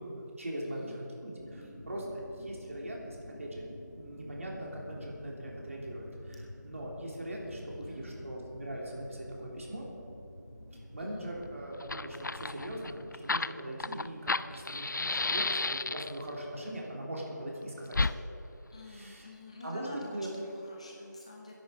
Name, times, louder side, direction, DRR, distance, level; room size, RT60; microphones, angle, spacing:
voice 1, 0.0-3.6 4.0-9.8 10.7-18.2 18.9-19.3 19.6-20.3, right 1 dB, 45° right, -3 dB, 3.4 m, -41 dB
voice 2, 0.6-1.0 7.5-8.3 11.0-11.3 18.7-21.5, left 2 dB, 20° left, -1 dB, 1.0 m, -49 dB
sound 1, 1.4-13.2, left 1 dB, 35° left, 2.6 m, -49 dB
Fire, 11.4-11.5 11.7-16.3 17.9-18.1, left 3 dB, 75° left, 0.5 m, -32 dB
21.5 x 10.5 x 5.0 m, 2.8 s
figure-of-eight pair, 175°, 10 cm